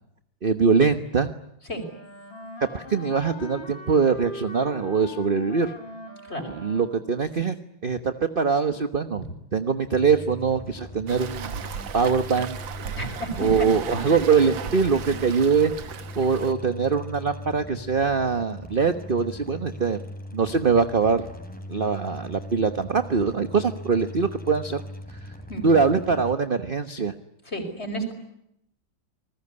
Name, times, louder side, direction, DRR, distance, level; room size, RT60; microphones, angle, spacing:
voice 1, 0.4-1.3 2.7-5.7 6.5-7.6 7.8-9.2 9.5-11.6 11.9-12.6 13.4-15.7 16.2-20.0 20.3-21.2 21.7-24.8 25.6-27.2, right 5 dB, 35° right, 10 dB, 1.1 m, -23 dB
Wind instrument woodwind instrument, 1.7-7.2, left 3 dB, 65° left, 4.1 m, -40 dB
sound 1, 9.9-26.3, left 1 dB, 5° left, 4.1 m, -40 dB
Waves surf, 11.1-16.5, right 8 dB, 70° right, 2.0 m, -36 dB
voice 2, 12.9-13.7 15.1-15.2 25.5-25.7 27.5-28.1, right 1 dB, 30° left, 6 dB, 5.6 m, -31 dB
28.5 x 21.0 x 9.8 m, 0.79 s
omnidirectional pair, 2.2 m